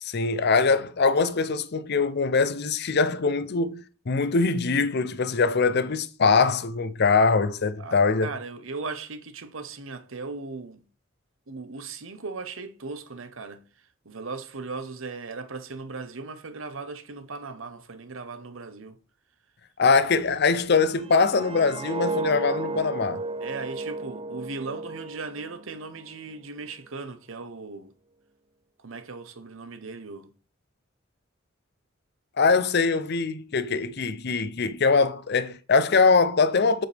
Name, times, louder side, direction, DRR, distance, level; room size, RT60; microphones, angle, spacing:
voice 1, 0.0-8.3 19.8-23.2 32.4-36.9, left 4 dB, 55° left, 0.6 m, -22 dB
voice 2, 7.8-10.8 11.5-13.6 14.0-19.0 23.4-27.9 28.8-30.3, right 4 dB, 75° right, 0.9 m, -38 dB
sound 1, 21.0-26.0 26.4-26.7, right 3 dB, 30° right, 0.4 m, -33 dB
7.9 x 6.9 x 3.4 m
head